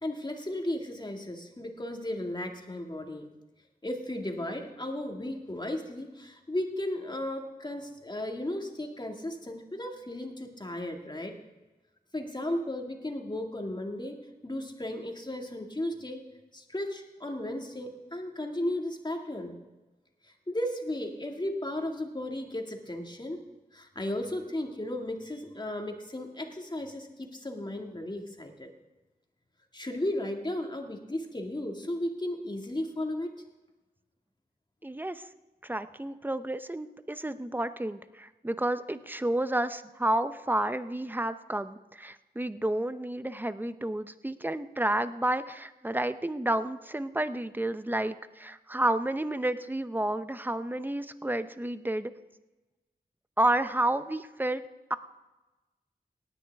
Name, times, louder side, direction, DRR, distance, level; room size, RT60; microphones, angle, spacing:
voice 1, 0.0-3.3 3.8-11.3 12.1-14.2 14.4-16.2 16.5-19.6 20.3-23.4 23.7-28.7 29.7-33.3, left 1 dB, 25° left, 2 dB, 2.0 m, -35 dB
voice 2, 34.8-35.2 35.6-52.1 53.4-54.6 54.9-55.0, right 1 dB, 10° right, 12 dB, 0.7 m, -30 dB
18.0 x 9.7 x 3.5 m, 1.1 s
cardioid pair, 50°, 17 cm